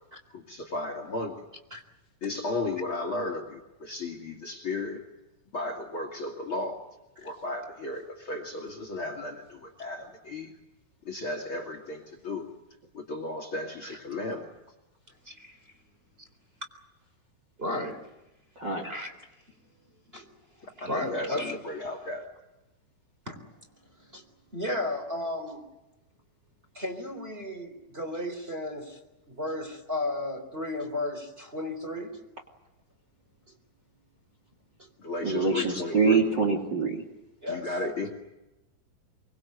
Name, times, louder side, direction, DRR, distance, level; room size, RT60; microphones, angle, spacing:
voice 1, 0.3-1.4 2.2-5.0 5.5-6.8 7.2-10.5 11.0-12.5 12.9-14.5 20.8-22.2 35.0-36.2 37.5-38.1, left 2 dB, 35° left, 6 dB, 3.0 m, -34 dB
voice 2, 15.2-15.6 17.6-18.1 18.8-19.1 20.1-20.3 20.6-21.6 23.3-23.6 24.0-24.2 24.5-25.7 26.7-29.0 29.3-32.2 34.8-34.9 37.4-37.7, left 1 dB, 15° right, 6 dB, 3.6 m, -34 dB
voice 3, 35.2-37.0, right 4 dB, 30° right, 3 dB, 3.0 m, -25 dB
25.0 x 24.0 x 8.1 m, 0.96 s
omnidirectional pair, 4.3 m